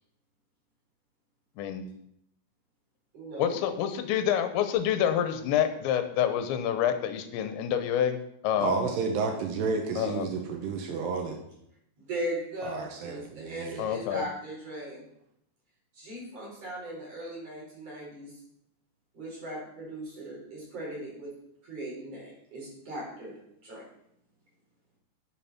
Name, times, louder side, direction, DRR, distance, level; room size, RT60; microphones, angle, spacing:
voice 1, 1.6-1.9 3.4-8.9 10.0-10.3 13.8-14.3, left 9 dB, 90° left, 9 dB, 3.1 m, -27 dB
voice 2, 3.1-3.6 12.0-15.0 15.9-18.3 19.1-21.3 21.6-23.3 23.6-23.8, right 1 dB, 35° right, -5 dB, 5.2 m, -38 dB
voice 3, 8.6-11.4 12.6-13.9, right 4 dB, 75° right, 4 dB, 3.1 m, -31 dB
9.1 x 7.9 x 5.9 m, 0.74 s
omnidirectional pair, 5.2 m